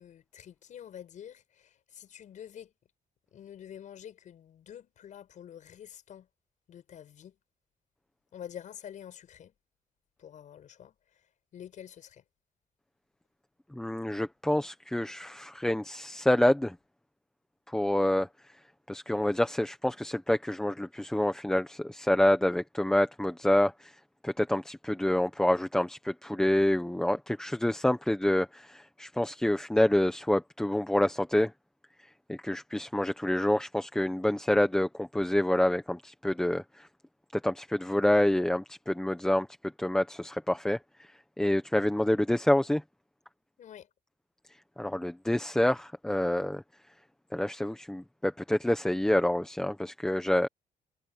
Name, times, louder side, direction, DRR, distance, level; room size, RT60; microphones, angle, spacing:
voice 1, 0.0-2.7 3.3-6.3 6.7-7.4 8.3-9.5 10.2-12.2 43.6-43.9, left 9 dB, 55° left, 7.5 m, -47 dB
voice 2, 13.7-16.7 17.7-18.3 18.9-24.0 24.2-31.5 32.3-36.9 37.3-39.5 39.8-40.8 41.4-42.8 44.8-46.6 47.3-50.5, left 1 dB, 5° left, 1.0 m, -27 dB
cardioid pair, 175°, 15 cm